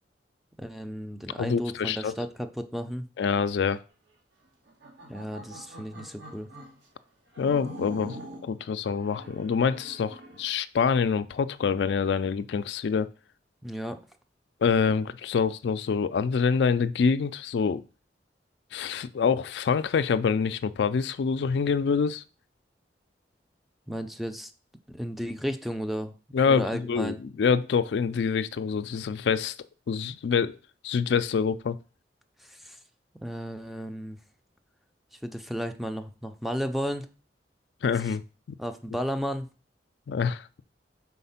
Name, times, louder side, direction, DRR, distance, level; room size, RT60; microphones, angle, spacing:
voice 1, 0.6-3.1 5.1-6.5 13.6-14.0 23.9-24.5 24.9-26.1 26.5-27.2 32.4-32.8 33.2-34.2 35.1-37.1 37.9-38.2 38.6-39.5, equal, ahead, 0.4 m, -33 dB
voice 2, 1.4-2.1 3.2-3.8 7.4-13.1 14.6-17.8 18.7-22.2 26.3-29.5 29.9-30.6 30.8-31.8 37.8-38.2 38.5-38.6 40.1-40.6, left 6 dB, 75° left, 0.4 m, -26 dB
sound 1, 4.7-6.8 7.3-8.5 9.0-10.5, right 1 dB, 90° right, 1.5 m, -44 dB
4.3 x 4.2 x 5.6 m
head